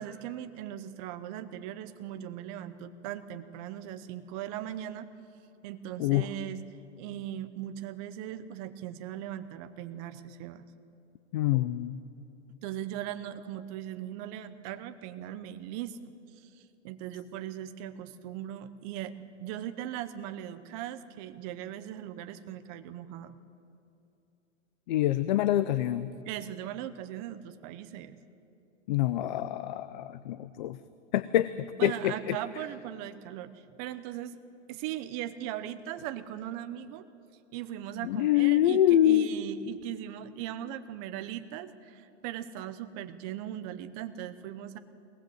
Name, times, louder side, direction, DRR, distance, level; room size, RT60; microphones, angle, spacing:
voice 1, 0.0-5.1 5.6-6.6 7.0-10.7 12.6-16.0 16.3-23.4 26.2-28.2 31.8-34.4 34.7-37.1 37.5-44.8, right 11 dB, 30° right, 11 dB, 0.8 m, -39 dB
voice 2, 11.3-12.0 24.9-26.1 28.9-30.8 31.1-32.4 38.0-39.3, left 13 dB, 40° left, 14 dB, 0.5 m, -26 dB
22.0 x 18.5 x 7.9 m, 2.7 s
hypercardioid pair, 155°, 38 cm